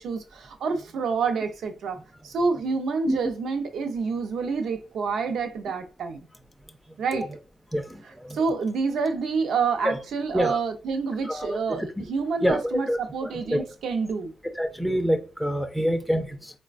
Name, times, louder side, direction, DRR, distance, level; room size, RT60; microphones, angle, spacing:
voice 1, 0.0-2.0 2.2-6.3 7.0-7.3 8.3-14.3, right 5 dB, 75° right, 0.5 m, -28 dB
voice 2, 7.7-8.4 9.8-9.9 10.3-10.6 11.2-12.1 12.4-13.6 14.6-16.6, equal, ahead, 0.3 m, -27 dB
3.9 x 2.1 x 2.4 m
wide cardioid pair, 145°, 0 cm